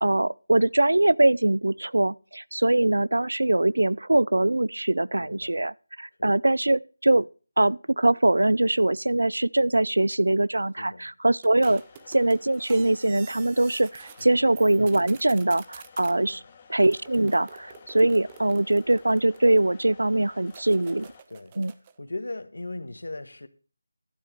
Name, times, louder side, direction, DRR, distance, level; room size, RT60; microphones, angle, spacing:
voice 1, 0.0-7.3 7.6-11.8 12.1-16.4 16.7-21.1 21.6-21.7, right 2 dB, 85° right, 0.5 m, -22 dB
voice 2, 5.2-5.6 6.2-6.3 10.8-11.1 14.2-14.5 16.3-16.5 21.3-21.5 22.0-23.5, left 2 dB, 75° left, 1.6 m, -38 dB
sound 1, 11.4-14.3 14.6-16.1 16.8-19.8 20.5-22.0, right 8 dB, 20° right, 0.7 m, -48 dB
sound 2, 11.7-21.2, left 6 dB, 25° left, 1.4 m, -52 dB
12.0 x 7.3 x 5.2 m
figure-of-eight pair, 165°, 0 cm